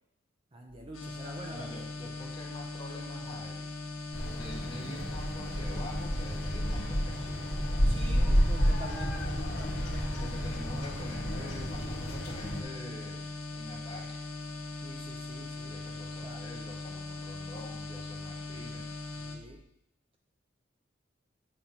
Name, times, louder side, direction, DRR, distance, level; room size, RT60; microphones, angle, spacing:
voice 1, 0.5-1.9 7.8-10.2 14.8-15.7 16.2-16.4 19.2-19.6, right 1 dB, 30° right, 1 dB, 0.8 m, -47 dB
sound 1, 0.7-19.5, left 2 dB, 50° right, 1.6 m, -55 dB
sound 2, 0.9-19.4, left 3 dB, 90° left, 1.1 m, -40 dB
voice 2, 1.5-3.7 4.3-7.6 10.2-14.2 15.6-18.9, left 1 dB, 25° left, -2 dB, 1.6 m, -46 dB
sound 3, 4.1-12.6, equal, 75° left, 1.5 m, -31 dB
8.2 x 3.7 x 5.8 m, 0.77 s
head